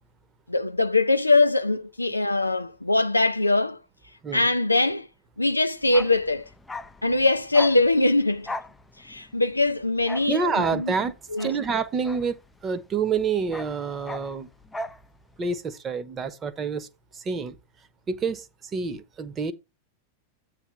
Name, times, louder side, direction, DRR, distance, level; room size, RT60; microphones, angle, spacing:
voice 1, 0.5-3.8 4.3-5.1 5.4-6.5 7.0-8.5 9.0-10.4 10.7-10.9 11.3-11.5, left 2 dB, 85° left, 0.4 m, -22 dB
Bark, 5.8-12.9 13.1-15.1 15.3-15.5, left 1 dB, 10° left, 0.5 m, -39 dB
voice 2, 10.3-11.1 11.4-14.5 15.4-16.9 17.1-17.6 18.1-18.5 18.7-19.5, right 5 dB, 25° right, 1.0 m, -27 dB
8.8 x 3.4 x 5.9 m
figure-of-eight pair, 90°, 0 cm